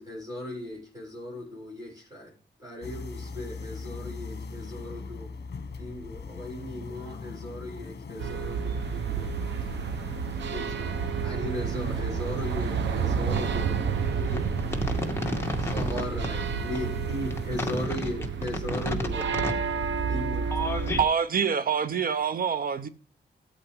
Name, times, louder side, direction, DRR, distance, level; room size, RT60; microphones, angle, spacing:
voice 1, 0.0-2.3 2.6-5.3 5.8-9.3 9.7-9.8 10.5-13.8 15.7-19.3 20.1-20.4, left 1 dB, 20° right, 7.0 m, -37 dB
sound 1, 2.8-17.9, left 5 dB, 65° left, 1.2 m, -42 dB
sound 2, 8.2-21.0, right 6 dB, 90° right, 0.9 m, -30 dB
voice 2, 14.2-15.8 17.5-18.0 18.7-18.9 19.4-19.5 20.5-21.0, left 1 dB, 15° left, 2.1 m, -31 dB
voice 3, 21.0-22.9, right 7 dB, 55° right, 0.8 m, -26 dB
13.5 x 8.5 x 3.5 m
wide cardioid pair, 110°, 18 cm